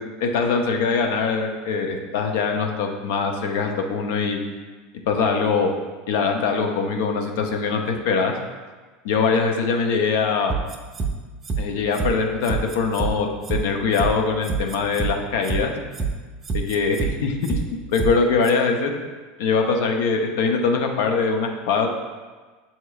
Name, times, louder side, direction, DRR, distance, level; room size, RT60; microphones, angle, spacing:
voice 1, 0.0-4.4 5.1-5.7 6.1-8.3 9.0-10.6 11.6-15.7 16.5-17.6 17.9-18.9 19.4-22.0, left 5 dB, 75° left, 3 dB, 0.6 m, -22 dB
sound 1, 10.5-11.1 11.4-11.6 11.9-12.1 12.4-13.1 13.4-13.6 13.9-14.1 14.4-15.1 15.4-15.6 15.9-16.1 16.4-17.1 17.4-17.6 17.9-18.1 18.4-18.5, right 5 dB, 25° right, 0.5 m, -26 dB
6.6 x 2.9 x 2.3 m, 1.3 s
supercardioid pair, 120°, 0 cm